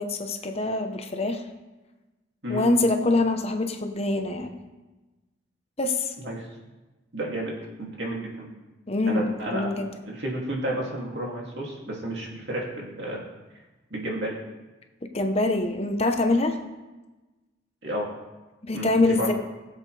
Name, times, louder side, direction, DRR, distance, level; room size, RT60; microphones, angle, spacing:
voice 1, 0.0-1.4 2.5-4.5 5.8-6.1 8.9-9.9 15.1-16.6 18.6-19.3, left 2 dB, 30° left, 5 dB, 0.9 m, -24 dB
voice 2, 2.4-2.7 6.2-6.4 7.1-8.5 9.1-13.2 13.9-14.4 17.8-18.1 18.7-19.3, right 1 dB, 60° right, -2 dB, 2.5 m, -31 dB
20.5 x 7.6 x 3.3 m, 1.2 s
head